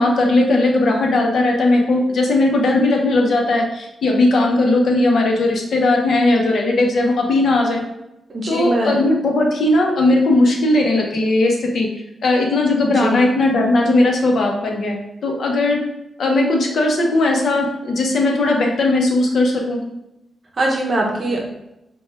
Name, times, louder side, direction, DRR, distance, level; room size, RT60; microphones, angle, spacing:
voice 1, 0.0-7.8 8.5-11.9 12.2-15.0 15.2-15.8 16.2-19.8, left 2 dB, 65° left, 1 dB, 0.7 m, -17 dB
voice 2, 8.3-9.0 13.0-13.2 20.6-21.4, right 1 dB, 35° right, -1 dB, 0.6 m, -21 dB
4.3 x 2.3 x 3.3 m, 0.89 s
wide cardioid pair, 135°, 0 cm